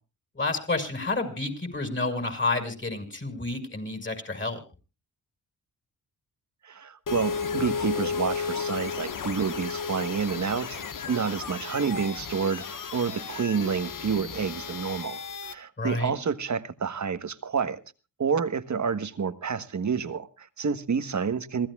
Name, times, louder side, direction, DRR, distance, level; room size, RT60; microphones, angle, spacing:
voice 1, 0.4-4.6 15.8-16.1, left 3 dB, 30° left, 6.0 m, -29 dB
voice 2, 6.6-17.8 18.2-21.7, right 6 dB, 50° right, 1.4 m, -29 dB
sound 1, 7.1-15.5, left 5 dB, 55° left, 1.5 m, -33 dB
26.5 x 16.5 x 2.5 m
cardioid pair, 60°, 38 cm